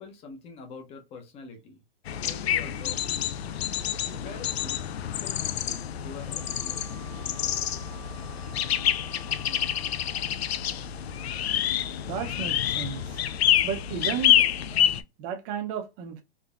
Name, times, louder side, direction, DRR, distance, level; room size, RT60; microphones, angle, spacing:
voice 1, 0.0-1.8 2.2-3.3 3.9-4.8 5.0-7.1, left 4 dB, 20° left, 0.7 m, -45 dB
sound 1, 2.1-15.0, left 10 dB, 85° left, 0.5 m, -27 dB
Wind instrument woodwind instrument, 6.2-10.3, right 2 dB, 35° left, 1.9 m, -51 dB
voice 2, 12.1-13.2 13.6-14.4 15.2-16.2, right 7 dB, 30° right, 0.6 m, -33 dB
3.7 x 2.7 x 2.4 m
hypercardioid pair, 140°, 31 cm